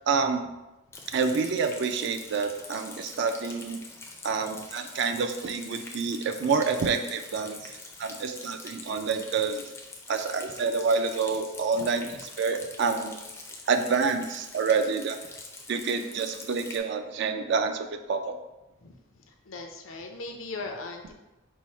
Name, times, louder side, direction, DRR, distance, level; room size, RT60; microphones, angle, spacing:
voice 1, 0.1-0.4 1.1-3.8 4.2-7.7 8.0-9.7 10.1-13.2 13.7-15.2 15.7-18.4, right 5 dB, 60° right, 7 dB, 0.3 m, -28 dB
Rain, 0.9-16.8, left 3 dB, 15° left, 0.4 m, -44 dB
voice 2, 19.3-21.1, left 3 dB, 80° left, 3 dB, 0.6 m, -38 dB
4.5 x 2.1 x 4.3 m, 1.0 s
head